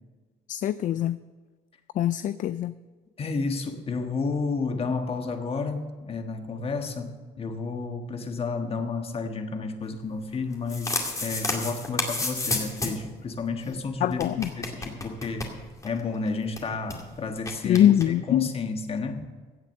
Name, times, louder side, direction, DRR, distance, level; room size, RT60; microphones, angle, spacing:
voice 1, 0.5-1.2 2.0-2.7 14.0-14.5 17.6-18.5, left 11 dB, 50° left, 15 dB, 0.4 m, -23 dB
voice 2, 3.2-15.5 15.8-19.3, left 4 dB, 35° left, 6 dB, 1.4 m, -31 dB
sound 1, 10.5-13.1 13.4-13.5 13.7-13.8 14.1-16.0 16.3-16.4 16.6-17.0 17.4-18.1, left 2 dB, 20° left, 2.2 m, -31 dB
16.0 x 7.7 x 6.4 m, 1.4 s
cardioid pair, 110°, 17 cm